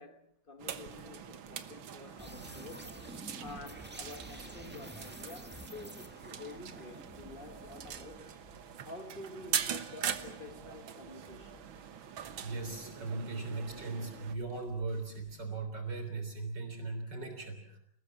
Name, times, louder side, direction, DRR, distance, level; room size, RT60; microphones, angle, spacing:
voice 1, 0.0-3.0 3.4-8.3 8.8-11.7, left 2 dB, 30° left, 1.4 m, -49 dB
sound 1, 0.6-14.4, right 8 dB, 75° right, 2.1 m, -42 dB
sound 2, 2.2-8.4, right 1 dB, 5° right, 1.8 m, -49 dB
sound 3, 7.1-15.4, right 1 dB, 35° right, 4.5 m, -62 dB
voice 2, 12.4-17.8, right 3 dB, 55° right, 4.1 m, -38 dB
29.5 x 19.5 x 7.4 m
omnidirectional pair, 2.2 m